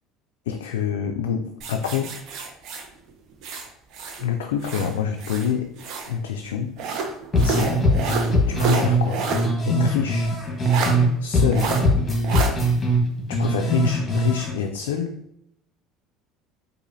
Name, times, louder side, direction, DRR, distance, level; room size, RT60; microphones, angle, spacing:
voice 1, 0.5-2.2 4.2-5.8 6.1-6.8 7.4-7.9 8.5-9.3 9.6-10.3 11.2-11.8 13.3-15.2, left 8 dB, 85° left, 4 dB, 0.3 m, -27 dB
sound 1, 1.6-4.2 4.6-6.1 6.8-9.5 9.8-9.9 10.7-10.9 11.5-11.8 12.2-12.5, right 5 dB, 60° right, 0.7 m, -29 dB
sound 2, 7.3-11.1 11.3-14.5, equal, 25° left, 1.3 m, -21 dB
4.8 x 2.5 x 2.7 m, 0.75 s
hypercardioid pair, 80°, 0 cm